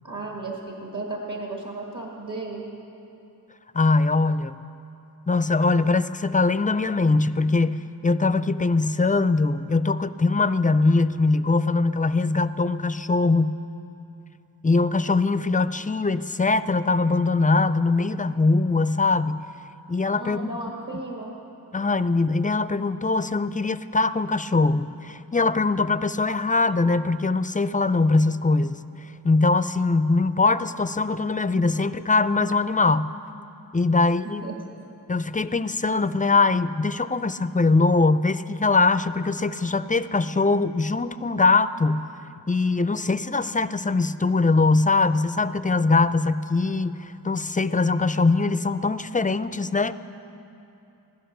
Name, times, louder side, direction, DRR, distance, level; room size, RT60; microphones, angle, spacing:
voice 1, 0.0-2.6 20.2-21.3 34.4-34.6, right 2 dB, 50° right, -1 dB, 1.8 m, -34 dB
voice 2, 3.7-4.6 5.3-13.5 14.6-19.4 19.9-20.6 21.7-28.8 29.2-33.1 33.7-34.4 35.1-42.0 42.5-49.9, left 3 dB, 20° left, 13 dB, 0.4 m, -22 dB
15.5 x 12.5 x 6.7 m, 2.8 s
wide cardioid pair, 50°, 39 cm